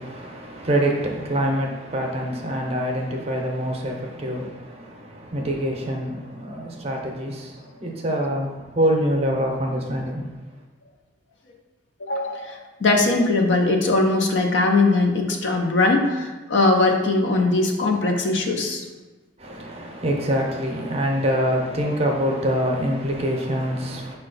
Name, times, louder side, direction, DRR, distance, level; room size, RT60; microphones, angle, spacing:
voice 1, 0.0-10.2 19.4-24.2, equal, 35° right, 0.5 m, -25 dB
voice 2, 12.0-18.8, left 2 dB, 80° left, 0.6 m, -20 dB
5.6 x 2.3 x 3.8 m
head